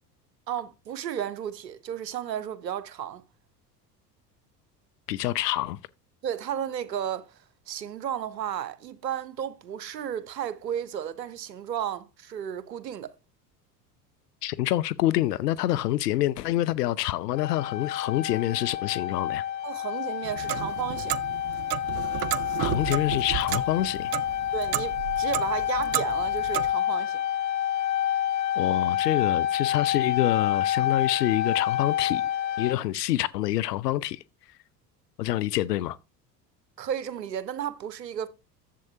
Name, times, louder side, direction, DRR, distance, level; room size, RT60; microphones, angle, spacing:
voice 1, 0.5-3.2 6.2-7.4 7.7-13.1 19.6-21.2 24.5-27.2 36.8-38.3, right 9 dB, 85° right, 0.9 m, -33 dB
voice 2, 5.1-5.8 14.4-19.4 22.6-24.1 28.6-32.3 32.6-34.2 35.2-36.0, left 14 dB, 75° left, 0.6 m, -27 dB
sound 1, 17.4-32.7, left 11 dB, 35° left, 0.9 m, -28 dB
Clock, 20.2-26.7, right 15 dB, 35° right, 0.4 m, -33 dB
11.0 x 7.7 x 2.7 m
hypercardioid pair, 75°, 49 cm